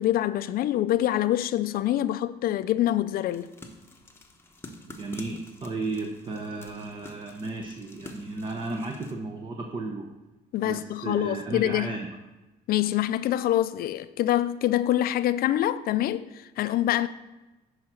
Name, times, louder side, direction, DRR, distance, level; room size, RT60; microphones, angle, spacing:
voice 1, 0.0-3.5 10.5-12.0 12.7-17.1, left 13 dB, 60° left, 0.4 m, -25 dB
sound 1, 3.3-9.1, left 2 dB, 15° left, 0.9 m, -48 dB
voice 2, 4.9-10.1 10.6-12.1, right 3 dB, 30° right, 0.8 m, -34 dB
10.5 x 4.9 x 4.3 m
cardioid pair, 110°, 17 cm